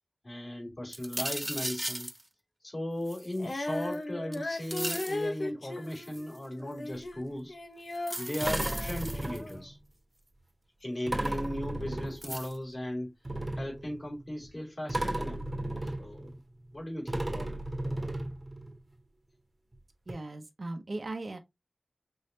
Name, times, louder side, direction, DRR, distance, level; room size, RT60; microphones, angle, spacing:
voice 1, 0.2-2.1 2.6-7.5 8.2-9.8 10.8-13.1 13.6-15.5 15.8-16.3 16.7-17.6, left 1 dB, 55° left, 3.0 m, -37 dB
sound 1, 0.9-2.2 3.1-4.0 4.3-5.2 5.9-6.4 8.0-9.5 11.3-11.4 12.2-12.6, right 1 dB, 25° right, 0.3 m, -37 dB
Female singing, 3.4-9.6, left 2 dB, 90° left, 0.8 m, -37 dB
sound 2, 7.1-7.2 8.4-9.8 11.1-12.6 13.2-14.5 14.9-16.8 17.1-18.8 19.7-19.8 20.1-20.2, right 1 dB, 50° right, 1.3 m, -35 dB
voice 2, 20.1-21.4, right 2 dB, 85° right, 0.7 m, -38 dB
5.4 x 3.2 x 2.7 m
wide cardioid pair, 45°, 0 cm